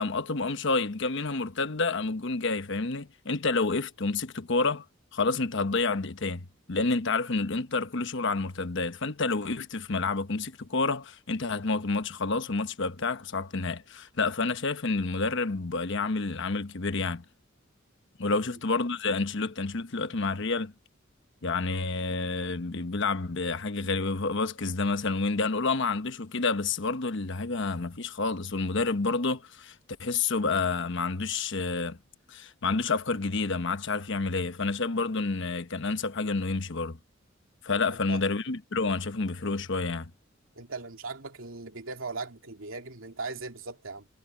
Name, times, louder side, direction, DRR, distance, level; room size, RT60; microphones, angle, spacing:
voice 1, 0.0-4.8 5.1-17.2 18.2-20.7 21.4-29.7 30.0-32.0 32.3-37.0 37.6-40.1, left 3 dB, 65° left, 1.1 m, -29 dB
voice 2, 37.9-38.2 40.5-44.1, right 3 dB, 90° right, 2.6 m, -39 dB
head